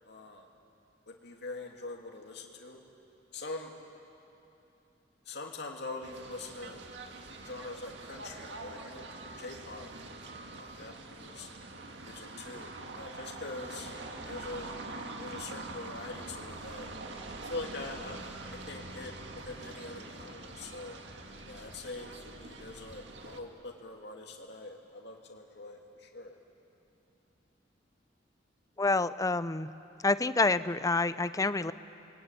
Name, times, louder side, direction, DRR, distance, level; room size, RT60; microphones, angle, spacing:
voice 1, 0.0-0.5 1.1-2.8 3.3-3.7 5.2-6.8 7.3-9.9 10.5-11.5 12.0-12.7 13.0-14.0 14.2-14.7 15.2-16.9 17.4-21.0 21.4-26.4, left 3 dB, 65° left, 1 dB, 2.6 m, -43 dB
sound 1, 6.0-23.4, right 2 dB, 70° right, 2.0 m, -45 dB
sound 2, 14.1-23.2, right 1 dB, 50° right, 3.7 m, -55 dB
voice 2, 28.8-29.7 30.0-31.7, left 3 dB, 20° left, 14 dB, 0.6 m, -28 dB
29.0 x 22.0 x 9.2 m, 2.8 s
head